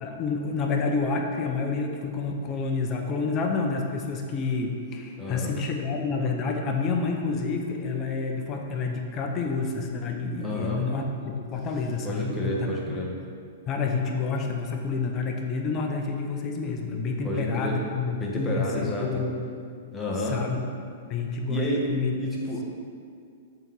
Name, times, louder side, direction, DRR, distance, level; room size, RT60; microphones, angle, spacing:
voice 1, 0.0-11.1 11.3-13.0 13.7-19.4 20.2-20.6 21.1-22.1, left 4 dB, 30° left, 2 dB, 0.7 m, -29 dB
voice 2, 5.2-5.5 10.4-10.8 12.0-13.1 17.2-17.8 18.2-19.2 19.9-20.4 21.5-21.9 22.2-22.6, equal, 10° left, -4 dB, 1.2 m, -30 dB
7.0 x 4.1 x 4.0 m, 2.3 s
hypercardioid pair, 130°, 0 cm